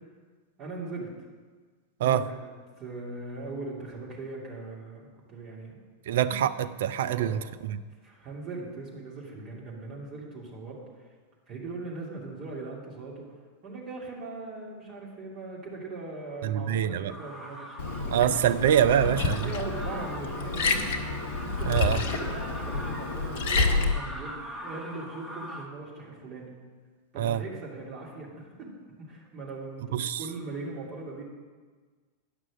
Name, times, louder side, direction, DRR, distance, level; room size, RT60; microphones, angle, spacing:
voice 1, 0.6-1.1 2.0-5.8 7.0-7.5 8.0-10.8 11.5-13.3 13.6-17.7 18.0-21.0 21.4-26.5 27.1-28.7 29.0-31.2, right 3 dB, 35° right, -3 dB, 2.7 m, -40 dB
voice 2, 6.1-7.8 16.4-17.1 18.1-19.5 21.7-22.0 27.2-27.4 29.9-30.2, right 10 dB, 60° right, 12 dB, 0.4 m, -25 dB
sound 1, 17.1-25.7, equal, 5° left, 1.3 m, -41 dB
Liquid, 17.8-23.9, left 3 dB, 55° left, 0.8 m, -29 dB
10.0 x 6.1 x 6.3 m, 1.5 s
figure-of-eight pair, 90°, 0 cm